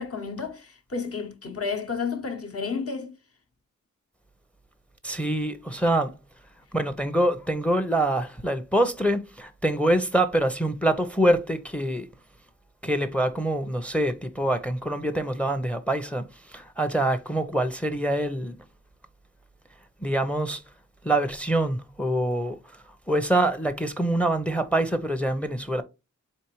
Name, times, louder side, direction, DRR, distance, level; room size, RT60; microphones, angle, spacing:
voice 1, 0.0-3.2, left 5 dB, 50° left, 0.9 m, -31 dB
voice 2, 5.0-6.1 6.7-12.1 12.8-18.6 20.0-20.6 21.0-22.6 23.1-25.8, right 1 dB, 5° left, 0.6 m, -25 dB
4.5 x 3.2 x 3.0 m
wide cardioid pair, 90°, 31 cm